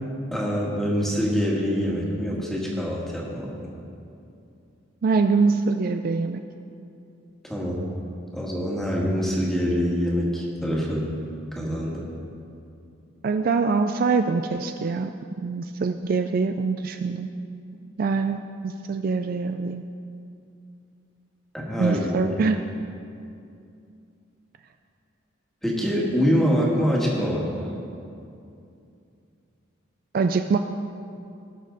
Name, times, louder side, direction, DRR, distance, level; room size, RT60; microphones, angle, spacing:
voice 1, 0.3-3.7 7.5-7.8 8.3-11.1 11.5-12.0 21.5-22.3 25.6-27.7, equal, ahead, -4 dB, 1.7 m, -25 dB
voice 2, 5.0-6.4 13.2-15.1 15.4-17.3 18.0-19.8 21.8-22.6 30.1-30.6, right 4 dB, 45° right, 7 dB, 0.3 m, -24 dB
18.0 x 6.4 x 4.0 m, 2.6 s
head